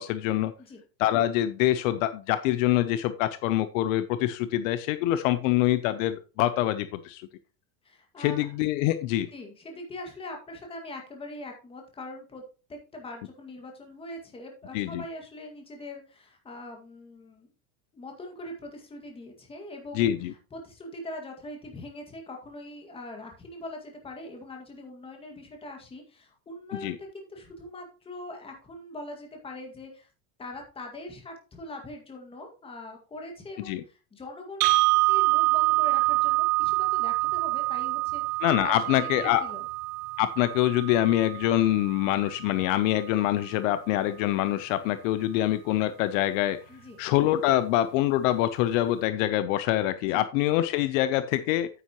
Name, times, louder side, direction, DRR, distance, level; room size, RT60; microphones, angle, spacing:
voice 1, 0.0-0.5 1.0-7.3 8.2-9.3 14.7-15.0 19.9-20.3 26.7-27.0 33.7-33.8 38.4-39.4 40.2-46.6 47.0-51.7, left 14 dB, 65° left, 12 dB, 0.8 m, -25 dB
voice 2, 7.8-8.5 9.3-12.4 12.7-17.5 17.9-20.2 20.5-30.1 30.4-39.6 46.7-47.0 50.0-50.2, left 1 dB, 15° left, 2 dB, 2.0 m, -42 dB
sound 1, 34.6-42.6, right 23 dB, 50° right, 0.6 m, -26 dB
9.4 x 8.7 x 3.0 m, 0.33 s
cardioid pair, 170°, 41 cm